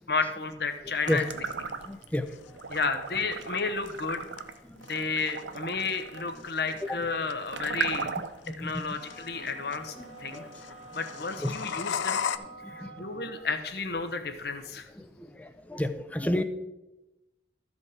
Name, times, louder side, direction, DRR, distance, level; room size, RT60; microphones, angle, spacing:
voice 1, 0.1-1.4 2.7-4.3 4.9-8.1 8.5-10.5 10.9-12.2 12.7-14.9, left 4 dB, 55° left, 8 dB, 0.9 m, -32 dB
sound 1, 1.0-12.4, left 7 dB, 85° left, 0.5 m, -39 dB
sound 2, 1.0-2.2 2.6-8.5, right 5 dB, 80° right, 0.7 m, -37 dB
voice 2, 1.9-2.2 6.4-6.5 6.9-7.0 8.5-9.0 10.0-10.1 10.3-10.5 11.4-11.5 12.8-12.9 15.0-15.1 15.7-16.4, left 1 dB, 10° left, 10 dB, 0.5 m, -30 dB
sound 3, 8.9-13.6, right 2 dB, 35° right, 1.1 m, -49 dB
13.5 x 5.3 x 4.8 m, 1.0 s
head